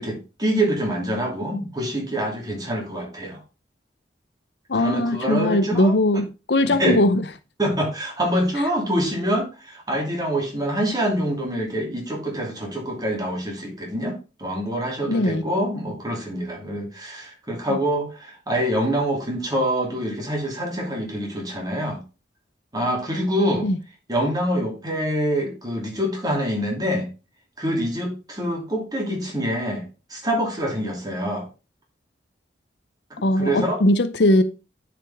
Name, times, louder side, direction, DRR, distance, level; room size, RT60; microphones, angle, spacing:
voice 1, 0.0-3.4 4.7-6.2 6.6-7.0 7.6-22.0 22.7-23.7 24.1-27.1 27.6-31.5 33.1-33.8, equal, 20° right, 2.8 m, -25 dB
voice 2, 4.7-7.2 15.1-15.4 17.7-17.8 23.6-23.8 33.2-34.4, left 1 dB, 65° left, 0.7 m, -20 dB
10.0 x 5.2 x 3.5 m
head